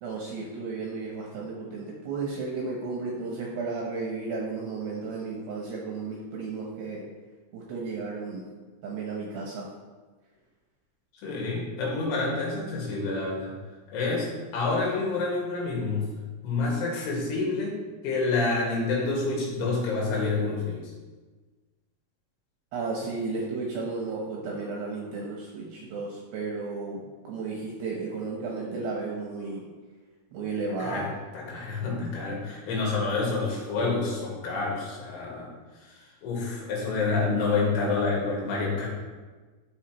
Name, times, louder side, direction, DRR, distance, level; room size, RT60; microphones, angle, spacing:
voice 1, 0.0-7.0 7.5-8.4 8.8-9.7 22.7-29.6 30.3-31.1, right 4 dB, 75° right, -2 dB, 2.6 m, -33 dB
voice 2, 11.2-13.6 13.9-16.1 16.4-17.8 18.0-20.9 30.8-31.1 31.3-35.5 35.8-38.9, left 3 dB, 75° left, -3 dB, 4.0 m, -28 dB
13.0 x 4.9 x 3.0 m, 1.3 s
omnidirectional pair, 5.8 m